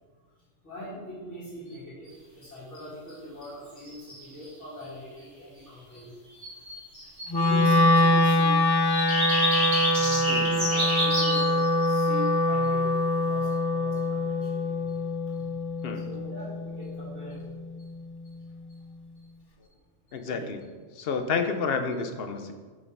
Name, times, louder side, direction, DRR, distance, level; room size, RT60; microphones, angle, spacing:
voice 1, 0.6-6.8 7.2-8.9 9.2-9.3 9.7-12.8 13.1-15.0 15.3-15.4 15.9-17.4 20.2-20.5, left 1 dB, 80° left, -13 dB, 3.0 m, -42 dB
sound 1, 3.9-4.3 6.4-8.2 8.9-12.0, equal, 45° right, 3.0 m, -28 dB
Wind instrument woodwind instrument, 7.3-17.5, left 1 dB, 40° left, 0.3 m, -24 dB
voice 2, 20.1-20.6 21.0-22.5, left 5 dB, 60° left, 7 dB, 0.9 m, -29 dB
6.8 x 5.5 x 5.3 m, 1.4 s
omnidirectional pair, 1.2 m